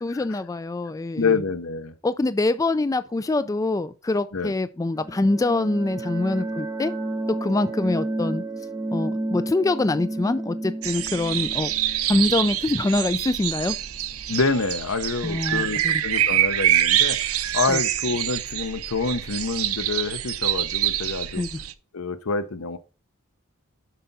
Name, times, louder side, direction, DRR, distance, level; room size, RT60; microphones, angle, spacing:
voice 1, 0.0-1.4 2.0-6.9 7.4-8.4 8.9-11.7 12.1-13.8 15.2-16.0 17.7-17.8 21.4-21.5, left 2 dB, 15° left, 0.3 m, -24 dB
voice 2, 0.9-1.9 4.3-4.5 14.3-21.4 21.9-22.8, left 4 dB, 80° left, 0.9 m, -27 dB
sound 1, 4.9-13.5, right 2 dB, 15° right, 1.1 m, -32 dB
sound 2, 10.8-21.7, right 12 dB, 90° right, 0.6 m, -25 dB
7.5 x 5.7 x 4.1 m
head